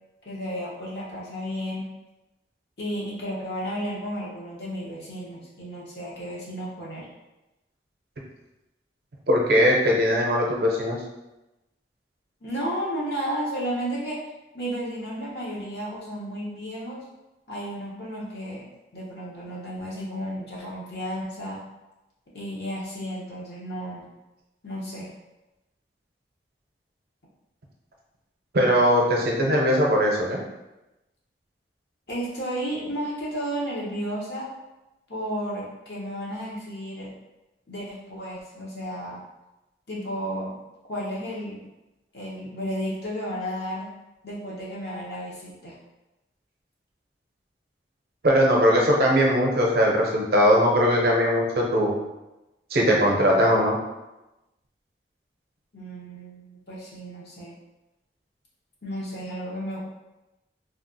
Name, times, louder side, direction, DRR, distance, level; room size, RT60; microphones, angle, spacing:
voice 1, 0.2-1.8 2.8-7.1 12.4-14.2 14.5-17.0 17.5-18.7 18.9-21.6 22.3-24.0 24.6-25.1 32.1-34.5 35.1-37.1 37.7-39.2 39.9-40.5 40.9-41.6 42.1-43.9 44.2-45.8 55.7-57.5 58.8-59.8, equal, 65° left, -6 dB, 1.0 m, -33 dB
voice 2, 9.3-11.0 28.5-30.4 48.2-52.0 52.7-53.8, equal, 60° right, -1 dB, 0.6 m, -20 dB
3.2 x 2.4 x 2.6 m, 1.0 s
head